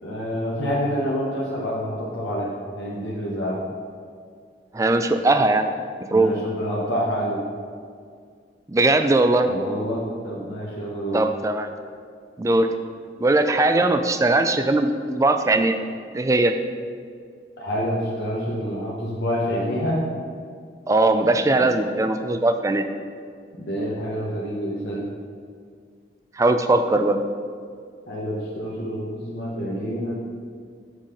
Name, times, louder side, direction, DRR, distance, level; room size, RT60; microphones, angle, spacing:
voice 1, 0.0-3.6 6.1-7.4 9.4-11.2 17.6-20.0 21.5-21.7 23.5-25.1 28.1-30.1, equal, 90° left, -5 dB, 1.1 m, -27 dB
voice 2, 4.7-5.7 6.1-6.3 8.7-9.5 11.1-11.7 12.4-12.7 13.2-15.8 16.1-16.5 20.9-22.9 26.4-27.2, right 2 dB, 20° right, 8 dB, 0.3 m, -19 dB
6.3 x 5.7 x 4.9 m, 2.1 s
head